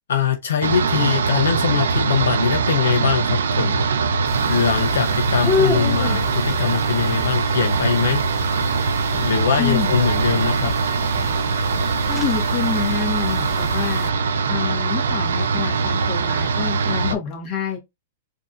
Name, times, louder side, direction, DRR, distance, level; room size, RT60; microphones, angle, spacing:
voice 1, 0.1-3.8 4.5-8.2 9.1-10.7 17.1-17.2, left 7 dB, 80° left, 0.7 m, -22 dB
sound 1, 0.6-17.1, right 5 dB, 85° right, 0.5 m, -22 dB
sound 2, 4.2-14.1, left 5 dB, 15° left, 0.5 m, -31 dB
voice 2, 9.6-10.0 12.1-14.1 14.5-17.8, left 7 dB, 35° left, 1.7 m, -27 dB
4.6 x 2.8 x 2.5 m
hypercardioid pair, 130°, 0 cm